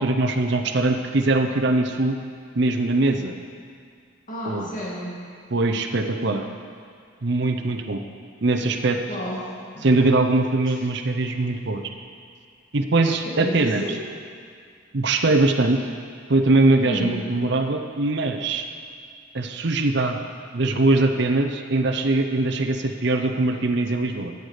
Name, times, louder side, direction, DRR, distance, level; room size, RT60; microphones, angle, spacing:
voice 1, 0.0-2.2 2.5-3.3 4.5-4.7 5.5-6.4 7.2-8.0 8.4-9.0 9.8-11.8 12.7-13.9 14.9-15.8 16.3-18.7 19.3-20.2 20.5-24.3, right 2 dB, 60° right, 5 dB, 0.7 m, -21 dB
voice 2, 4.3-5.1 9.1-9.9 10.7-10.8 13.2-14.0 16.8-17.1, equal, 40° left, -5 dB, 2.0 m, -31 dB
12.5 x 8.1 x 5.0 m, 2.2 s
head